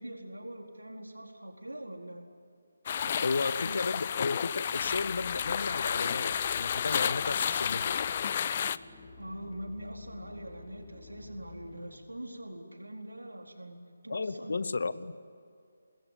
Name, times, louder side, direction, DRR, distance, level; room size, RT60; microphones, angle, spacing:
voice 1, 0.0-2.3 3.0-4.0 9.2-13.8 14.0-14.6, right 1 dB, 90° right, 2 dB, 4.3 m, -43 dB
sound 1, 2.9-8.8, left 8 dB, 40° left, 0.6 m, -31 dB
voice 2, 3.2-8.0 14.1-15.1, left 4 dB, 60° left, 15 dB, 1.1 m, -33 dB
sound 2, 4.8-12.0, left 4 dB, 20° left, 2.3 m, -50 dB
26.0 x 21.0 x 9.1 m, 2.4 s
figure-of-eight pair, 150°, 0 cm